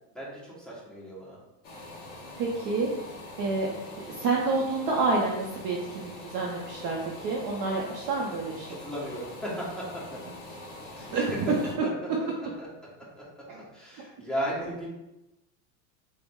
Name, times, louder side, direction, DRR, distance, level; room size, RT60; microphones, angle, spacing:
voice 1, 0.1-1.4 8.7-10.3 10.9-11.1 11.8-11.9 12.6-12.7 13.7-14.9, equal, ahead, -9 dB, 1.0 m, -35 dB
sound 1, 1.6-11.7, left 2 dB, 20° left, 0.4 m, -44 dB
voice 2, 2.4-2.9 3.4-3.7 4.0-8.7 11.1-11.5 13.5-13.6, right 3 dB, 40° right, -2 dB, 0.5 m, -29 dB
3.8 x 2.1 x 3.5 m, 0.96 s
supercardioid pair, 140°, 50 cm